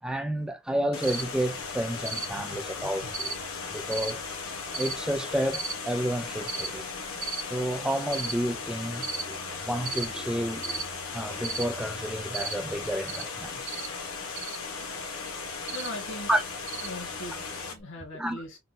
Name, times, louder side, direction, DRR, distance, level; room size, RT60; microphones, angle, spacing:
voice 1, 0.0-3.4 3.7-4.2 4.7-6.8 7.5-13.8 16.3-16.4 18.1-18.4, right 1 dB, 5° right, 0.4 m, -31 dB
Water, 0.9-17.7, left 4 dB, 75° left, 0.9 m, -37 dB
Cricket, 1.0-17.8, right 4 dB, 75° right, 0.9 m, -40 dB
voice 2, 2.3-3.1 15.7-16.3 16.8-18.6, left 1 dB, 60° left, 1.3 m, -41 dB
3.7 x 2.2 x 2.4 m
head